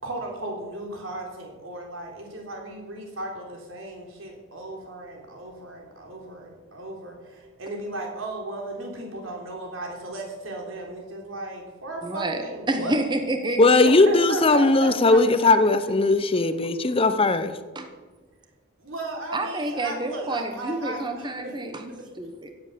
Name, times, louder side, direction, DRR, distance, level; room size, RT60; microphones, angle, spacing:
voice 1, 0.0-13.0 14.0-15.5 18.8-21.5 22.0-22.1, right 2 dB, 80° right, 3.7 m, -35 dB
voice 2, 12.0-13.6 17.7-17.9 19.3-21.9 22.2-22.5, right 2 dB, 25° right, 1.0 m, -28 dB
voice 3, 13.6-17.5, left 2 dB, 30° left, 0.7 m, -18 dB
17.0 x 7.9 x 6.8 m
head